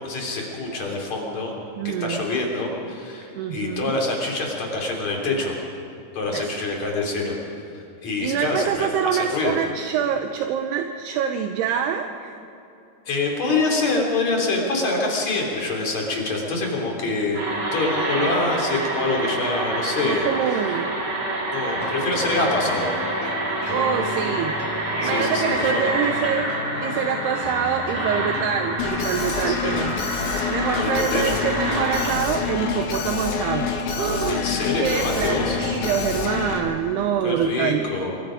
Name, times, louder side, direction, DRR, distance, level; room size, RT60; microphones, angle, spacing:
voice 1, 0.0-1.5 1.8-5.5 6.1-7.3 7.7-9.6 13.1-20.3 21.5-22.9 25.0-25.8 29.4-29.9 30.7-31.3 34.3-35.6 37.2-38.1, left 3 dB, 40° left, -1 dB, 4.1 m, -25 dB
voice 2, 1.8-2.3 3.4-4.0 6.3-6.5 8.2-12.3 20.0-21.0 23.7-24.6 25.0-26.5 26.8-30.0 30.5-34.4 34.8-37.9, right 8 dB, 75° right, 6 dB, 2.7 m, -25 dB
sound 1, 17.3-32.2, right 2 dB, 35° right, 2.9 m, -28 dB
sound 2, 21.7-36.7, left 6 dB, 70° left, 1.9 m, -34 dB
Alarm, 28.8-36.6, left 5 dB, 85° left, 4.4 m, -28 dB
27.0 x 22.0 x 5.1 m, 2.7 s
omnidirectional pair, 5.1 m